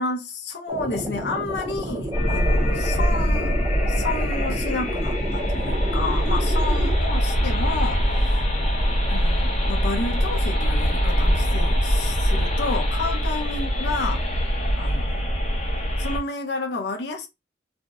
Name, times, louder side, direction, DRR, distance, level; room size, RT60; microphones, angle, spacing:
voice 1, 0.0-8.4 8.9-14.3 14.7-15.3 16.0-17.3, left 3 dB, 70° left, 0.6 m, -31 dB
sound 1, 0.7-7.0, right 1 dB, 25° right, 0.5 m, -32 dB
sound 2, 2.1-16.2, equal, 35° left, 0.7 m, -23 dB
2.6 x 2.0 x 3.4 m
head